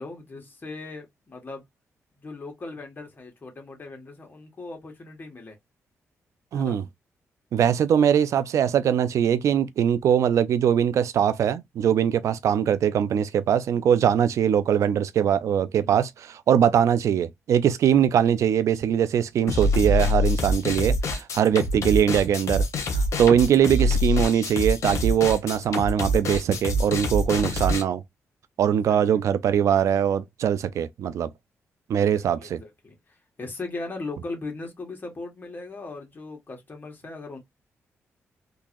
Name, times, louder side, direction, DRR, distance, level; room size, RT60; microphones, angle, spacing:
voice 1, 0.0-1.6 2.2-5.6 6.5-6.8 13.9-14.2 15.8-16.0 21.3-21.4 28.7-29.2 32.0-37.4, left 3 dB, 40° left, 1.8 m, -39 dB
voice 2, 6.5-6.9 7.5-28.0 28.6-31.3 31.9-32.6, right 9 dB, 75° right, 0.4 m, -22 dB
sound 1, 19.5-27.8, left 1 dB, 65° left, 1.2 m, -25 dB
3.8 x 2.8 x 2.6 m
cardioid pair, 75°, 5 cm